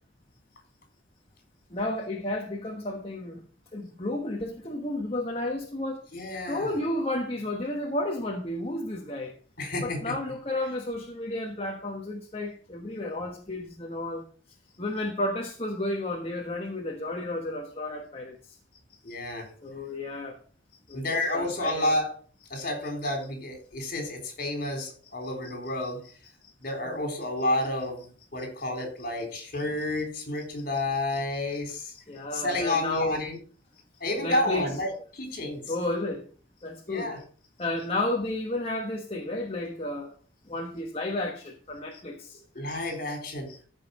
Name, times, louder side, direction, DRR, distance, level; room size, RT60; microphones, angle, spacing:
voice 1, 1.7-3.4 3.7-6.0 6.5-9.3 9.8-14.2 14.8-18.6 19.6-20.4 20.9-22.0 26.8-27.1 32.1-33.2 34.2-34.7 35.7-36.3 36.6-37.1 37.6-40.1 40.5-42.4, left 1 dB, 30° left, 1 dB, 1.2 m, -32 dB
voice 2, 6.1-6.7 9.6-10.1 19.0-19.5 20.9-22.1 22.5-26.0 26.6-31.9 32.3-33.4 34.0-35.7 36.9-37.2 42.6-43.6, left 1 dB, 45° left, 3 dB, 3.9 m, -30 dB
14.0 x 5.5 x 5.3 m, 0.42 s
head